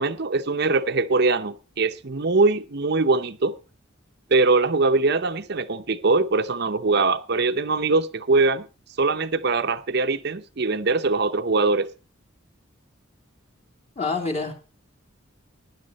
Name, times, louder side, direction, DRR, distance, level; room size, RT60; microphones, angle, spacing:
voice 1, 0.0-3.6 4.3-8.7 9.0-11.9, right 3 dB, 50° right, 0.7 m, -22 dB
voice 2, 14.0-14.5, left 3 dB, 30° left, 3.0 m, -26 dB
16.5 x 10.5 x 4.1 m
head